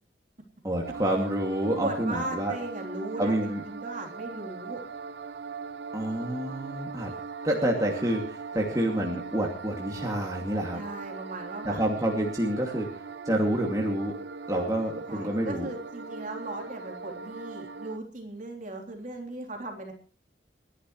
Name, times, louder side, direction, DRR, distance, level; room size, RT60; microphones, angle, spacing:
voice 1, 0.6-2.5 3.2-3.6 5.9-7.1 7.4-10.8 11.6-12.9 13.2-14.1 14.5-15.7, right 1 dB, 20° right, -1 dB, 2.4 m, -28 dB
sound 1, 0.8-18.0, right 4 dB, 75° right, 0.8 m, -40 dB
voice 2, 1.8-4.8 10.7-11.8 14.6-14.7 15.1-19.9, right 2 dB, 45° right, 2 dB, 3.6 m, -37 dB
29.5 x 11.0 x 3.2 m, 0.40 s
head